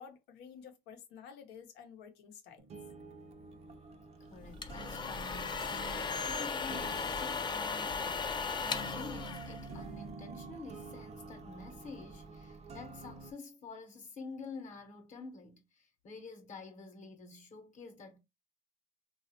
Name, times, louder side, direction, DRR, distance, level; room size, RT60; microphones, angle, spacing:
voice 1, 0.0-2.7, left 7 dB, 85° left, 0.8 m, -51 dB
sound 1, 2.6-13.3, right 3 dB, 40° right, 0.5 m, -49 dB
voice 2, 4.2-5.8 6.3-18.2, left 3 dB, 50° left, 0.9 m, -49 dB
sound 2, 4.4-10.1, left 5 dB, 25° left, 0.4 m, -37 dB
2.9 x 2.3 x 2.8 m
cardioid pair, 110°, 17 cm